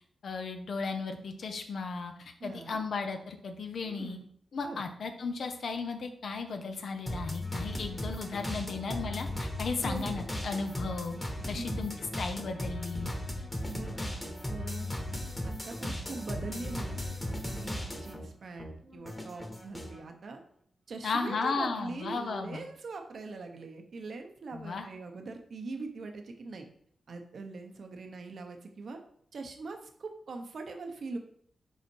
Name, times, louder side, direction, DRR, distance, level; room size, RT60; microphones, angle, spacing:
voice 1, 0.2-4.2 4.5-11.1 11.5-13.2 21.0-22.6 24.5-24.9, left 4 dB, 70° left, 6 dB, 0.8 m, -35 dB
voice 2, 2.4-2.8 3.8-4.2 4.6-4.8 9.8-10.2 11.5-12.1 13.6-14.0 14.5-17.0 17.3-20.4 20.9-26.7 27.1-29.0 29.3-31.2, right 3 dB, 65° right, 5 dB, 0.9 m, -42 dB
sound 1, 7.1-18.3 18.6-20.0, left 1 dB, 10° left, 1.3 m, -37 dB
5.6 x 4.2 x 4.6 m, 0.62 s
cardioid pair, 80°, 0 cm